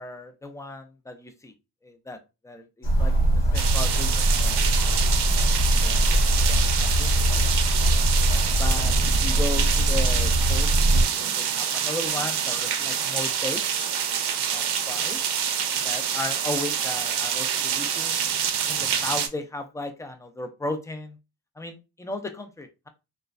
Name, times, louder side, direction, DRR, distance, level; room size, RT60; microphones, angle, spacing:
voice 1, 0.0-1.5 1.8-2.2 2.4-4.5 5.8-7.5 7.9-8.2 8.6-13.6 14.4-15.2 15.7-18.2 18.7-21.2 21.6-22.9, left 2 dB, 10° left, 6 dB, 0.4 m, -36 dB
sound 1, 2.8-11.0, right 1 dB, 75° left, 1.0 m, -22 dB
sound 2, 3.5-19.3, right 8 dB, 65° right, 0.5 m, -27 dB
3.0 x 2.2 x 2.4 m, 0.27 s
cardioid pair, 85°, 42 cm